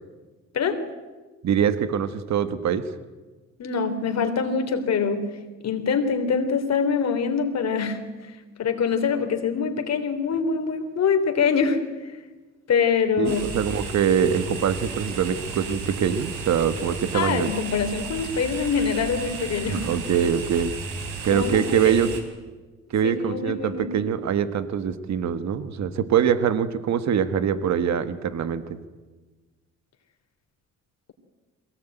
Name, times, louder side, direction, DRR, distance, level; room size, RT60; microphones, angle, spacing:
voice 1, 1.4-2.9 13.2-17.5 19.7-20.7 21.2-22.1 22.9-28.8, right 8 dB, 65° right, 12 dB, 1.5 m, -23 dB
voice 2, 3.6-5.3 5.6-8.0 8.6-12.1 12.7-13.4 17.1-19.8 21.3-22.0 23.0-23.9, left 6 dB, 60° left, 7 dB, 3.2 m, -24 dB
sound 1, 13.2-22.2, right 5 dB, 90° right, 3.8 m, -34 dB
22.0 x 18.0 x 9.2 m, 1.3 s
cardioid pair, 90°, 30 cm